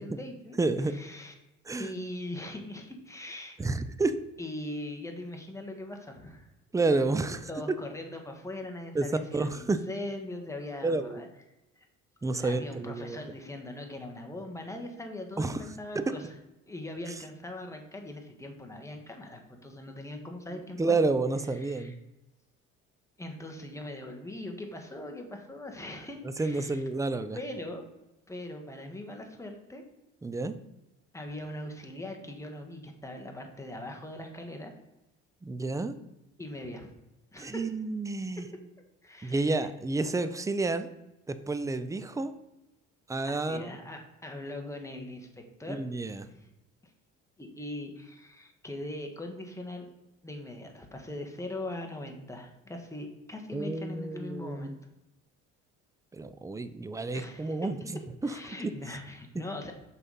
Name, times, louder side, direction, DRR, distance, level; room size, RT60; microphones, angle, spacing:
voice 1, 0.0-0.6 0.8-1.3 1.8-3.6 4.4-6.5 7.5-11.3 11.8-11.9 12.3-16.3 16.7-21.0 21.5-22.0 23.2-26.8 27.3-27.8 28.3-29.8 31.1-34.7 36.4-36.9 37.3-37.7 39.0-39.7 43.3-45.8 46.2-46.5 47.4-49.9 50.2-54.7 57.1-57.7 58.2-59.7, left 1 dB, 10° left, 3 dB, 1.3 m, -41 dB
voice 2, 0.6-1.0 1.7-1.9 3.6-4.2 6.7-7.5 8.9-9.8 10.8-11.2 12.2-13.2 15.4-15.6 15.9-16.1 20.5-21.9 26.4-27.4 30.2-30.6 35.4-35.9 37.4-38.5 39.2-40.9 41.3-42.3 43.1-43.8 45.7-46.3 53.5-54.8 56.1-57.8 58.2-58.4 58.6-58.7 59.4-59.5, right 3 dB, 10° right, 11 dB, 0.5 m, -30 dB
5.6 x 4.1 x 5.4 m, 0.95 s
supercardioid pair, 75°, 32 cm